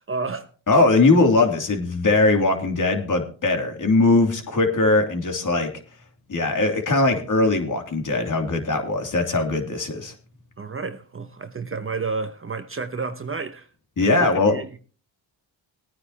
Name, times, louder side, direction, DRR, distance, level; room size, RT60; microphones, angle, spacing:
voice 1, 0.0-0.5 10.6-13.7 14.0-14.8, right 4 dB, 25° right, 1.0 m, -31 dB
voice 2, 0.7-5.7 6.3-10.1 14.0-14.6, left 2 dB, 40° left, 3.1 m, -20 dB
19.5 x 9.6 x 3.0 m
cardioid pair, 75°, 46 cm